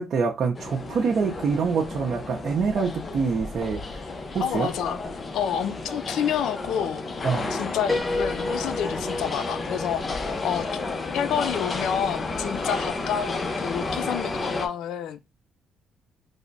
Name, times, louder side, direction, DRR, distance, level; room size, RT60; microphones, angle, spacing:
voice 1, 0.0-4.7 7.2-7.5, right 5 dB, 60° right, 0.6 m, -26 dB
sound 1, 0.5-14.7, left 3 dB, 35° left, 0.6 m, -32 dB
voice 2, 4.4-5.0 5.3-7.0 7.5-10.0 10.4-10.8 11.1-15.2, left 8 dB, 80° left, 0.4 m, -28 dB
Piano, 7.9-11.6, left 2 dB, 5° right, 0.6 m, -32 dB
3.4 x 2.1 x 3.8 m
cardioid pair, 90°, 0 cm